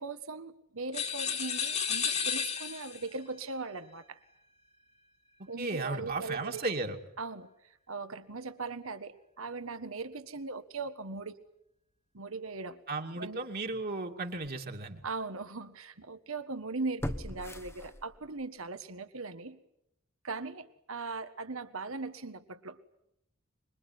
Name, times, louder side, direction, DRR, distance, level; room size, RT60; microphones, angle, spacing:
voice 1, 0.0-4.2 5.5-6.7 7.2-7.5 7.9-11.4 12.1-12.8 13.2-13.4 15.0-19.6 20.2-22.8, right 3 dB, 75° right, 10 dB, 1.6 m, -39 dB
sound 1, 0.9-3.1, left 7 dB, 30° left, 2.0 m, -32 dB
voice 2, 5.4-7.0 12.9-15.0, right 3 dB, 45° right, 2 dB, 2.4 m, -35 dB
sound 2, 13.7-13.8 14.4-14.5 17.0-18.4 18.8-18.9, left 1 dB, 10° left, 1.1 m, -39 dB
26.0 x 22.5 x 9.6 m, 0.80 s
head